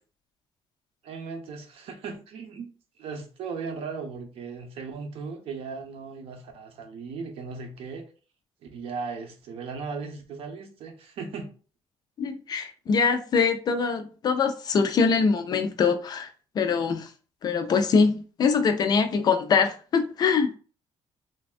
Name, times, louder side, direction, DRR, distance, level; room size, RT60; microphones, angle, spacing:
voice 1, 1.0-2.7 3.0-8.1 8.6-11.5, right 5 dB, 65° right, 0.7 m, -37 dB
voice 2, 12.2-16.3 16.6-17.1 17.4-20.5, left 5 dB, 40° left, 0.4 m, -23 dB
3.3 x 2.3 x 2.4 m
cardioid pair, 155°, 11 cm